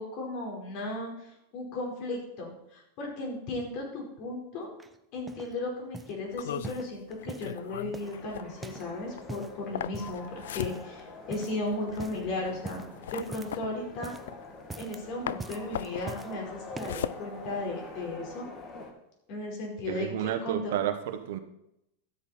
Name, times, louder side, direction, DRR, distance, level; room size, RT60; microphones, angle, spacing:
voice 1, 0.0-4.7 5.1-12.8 13.1-14.1 14.8-18.5 19.3-20.7, left 2 dB, 55° left, 0 dB, 4.8 m, -35 dB
sound 1, 4.8-5.5 5.9-6.2 6.6-7.6 7.9-8.9 9.2-9.6 9.9-10.2 10.6-11.0 11.3-11.6 11.9-12.2 12.6-13.7 13.9-14.3 14.6-15.0 15.4-16.3 16.7-17.1 17.8-17.9, right 3 dB, 15° right, 0.8 m, -43 dB
sound 2, 6.3-15.0 15.3-18.1, left 11 dB, 75° left, 0.4 m, -39 dB
sound 3, 8.0-18.9, left 2 dB, 35° left, 2.5 m, -46 dB
voice 2, 19.9-21.4, right 10 dB, 70° right, 8 dB, 1.4 m, -31 dB
12.5 x 8.2 x 4.4 m, 0.82 s
hypercardioid pair, 105°, 0 cm